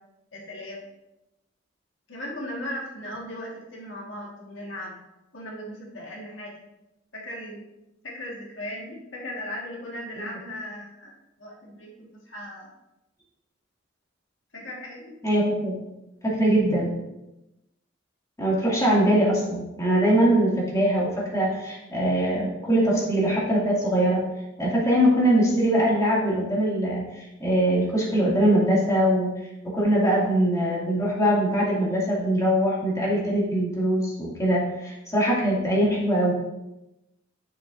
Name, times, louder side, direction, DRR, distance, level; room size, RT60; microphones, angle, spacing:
voice 1, 0.3-0.8 2.1-4.9 5.3-6.6 7.1-7.6 8.0-12.7 14.5-15.1, left 1 dB, 75° left, -2 dB, 1.7 m, -37 dB
voice 2, 15.2-15.8 16.2-16.9 18.4-24.2 24.6-29.3 29.7-36.3, right 1 dB, 20° left, -6 dB, 2.3 m, -22 dB
10.5 x 6.6 x 2.6 m, 0.94 s
head